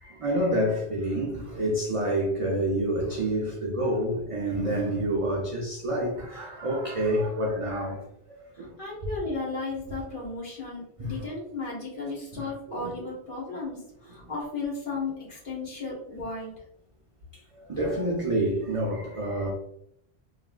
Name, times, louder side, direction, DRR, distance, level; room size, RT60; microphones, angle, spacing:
voice 1, 0.0-8.0 8.6-8.7 11.0-11.1 12.3-12.4 12.7-12.9 17.7-19.5, right 1 dB, 60° right, 0.3 m, -28 dB
voice 2, 8.5-16.5, left 3 dB, 55° left, 1.3 m, -35 dB
3.1 x 2.3 x 2.2 m
omnidirectional pair, 1.1 m